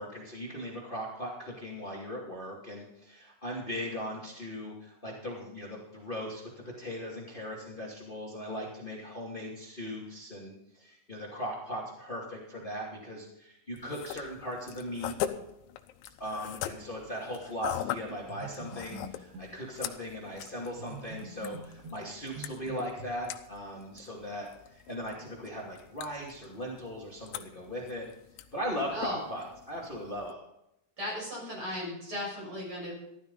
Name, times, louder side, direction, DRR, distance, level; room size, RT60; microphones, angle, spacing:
voice 1, 0.0-15.2 16.2-28.1 28.5-30.4, equal, 35° left, -2 dB, 0.8 m, -39 dB
sound 1, 13.7-30.3, left 12 dB, 85° left, 3.1 m, -42 dB
sound 2, 18.1-19.6 20.8-23.1, right 3 dB, 85° right, 1.3 m, -45 dB
voice 2, 31.0-32.9, left 1 dB, 25° right, -3 dB, 7.1 m, -36 dB
13.5 x 13.0 x 4.0 m, 0.82 s
omnidirectional pair, 5.3 m